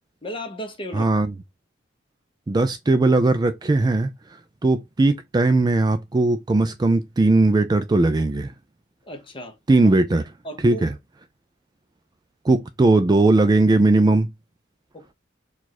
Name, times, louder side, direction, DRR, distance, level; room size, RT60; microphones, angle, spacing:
voice 1, 0.2-1.1 9.0-9.6 10.4-10.8 14.9-15.1, equal, 25° left, 1.0 m, -34 dB
voice 2, 0.9-1.3 2.5-4.1 4.6-8.5 9.7-10.2 10.6-10.9 12.4-14.3, right 2 dB, 20° right, 0.3 m, -18 dB
4.7 x 2.4 x 4.0 m
head